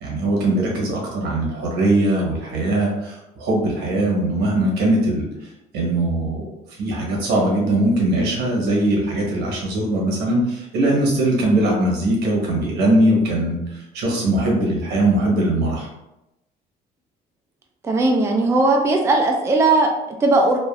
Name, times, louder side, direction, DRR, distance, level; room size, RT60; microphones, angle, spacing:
voice 1, 0.0-5.3 5.7-6.5 6.8-15.9, right 1 dB, 80° right, -2 dB, 1.1 m, -20 dB
voice 2, 17.8-20.6, right 2 dB, 15° right, 2 dB, 0.3 m, -18 dB
3.2 x 2.4 x 2.4 m, 0.91 s
cardioid pair, 110°, 17 cm